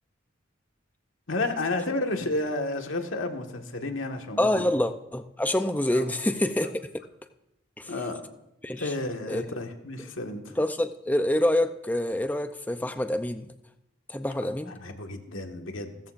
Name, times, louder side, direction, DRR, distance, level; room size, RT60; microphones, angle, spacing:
voice 1, 1.3-4.6 5.9-6.1 7.9-8.3 8.8-10.6 14.7-16.0, left 2 dB, 85° left, 3 dB, 1.8 m, -31 dB
voice 2, 4.4-6.7 7.8-7.9 8.6-8.9 9.3-9.4 10.6-13.5 14.1-14.7, left 1 dB, 10° left, 8 dB, 0.6 m, -26 dB
30.0 x 14.0 x 2.6 m, 0.87 s
head